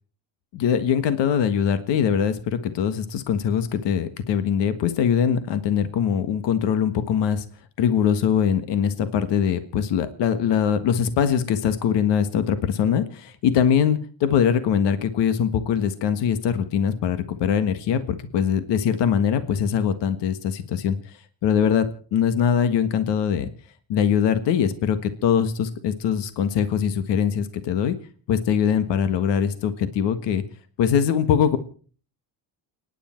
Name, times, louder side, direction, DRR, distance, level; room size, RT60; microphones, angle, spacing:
voice 1, 0.5-7.4 7.8-21.0 21.4-21.9 22.1-23.5 23.9-28.0 28.3-30.4 30.8-31.6, left 8 dB, 70° left, 11 dB, 1.6 m, -22 dB
29.5 x 10.0 x 4.5 m, 0.43 s
cardioid pair, 95°, 43 cm